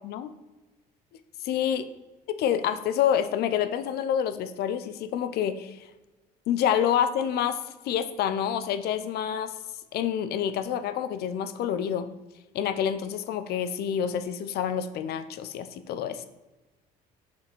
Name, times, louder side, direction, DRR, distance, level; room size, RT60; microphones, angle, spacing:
voice 1, 1.4-1.8 2.4-5.8 6.5-7.6 7.9-9.5 9.9-12.1 12.5-16.3, left 9 dB, 70° left, 11 dB, 0.5 m, -27 dB
5.6 x 4.2 x 4.4 m, 1.1 s
cardioid pair, 110°, 17 cm